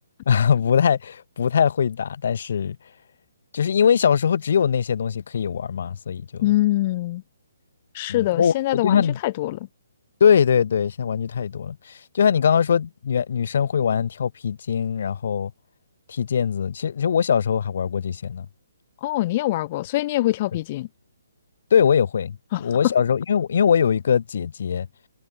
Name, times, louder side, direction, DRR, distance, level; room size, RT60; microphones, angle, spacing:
voice 1, 0.3-2.8 3.5-6.4 8.1-9.2 10.2-15.5 16.1-18.5 21.7-24.9, left 7 dB, 50° left, 1.2 m, -21 dB
voice 2, 6.4-7.2 7.9-9.7 19.0-20.9 22.5-22.9, left 16 dB, 25° left, 0.9 m, -24 dB
hypercardioid pair, 170°, 0 cm